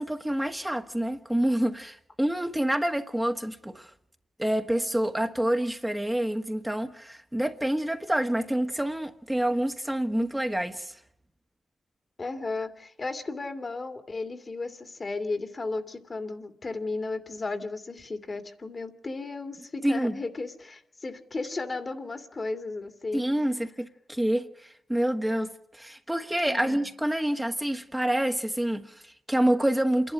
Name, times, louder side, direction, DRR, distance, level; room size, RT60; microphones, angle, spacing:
voice 1, 0.0-3.9 4.4-11.0 19.8-20.1 23.1-30.1, right 1 dB, 10° right, 1.5 m, -27 dB
voice 2, 12.2-23.2 26.5-26.9, left 3 dB, 45° left, 2.4 m, -34 dB
27.5 x 11.5 x 10.0 m
cardioid pair, 50°, 0 cm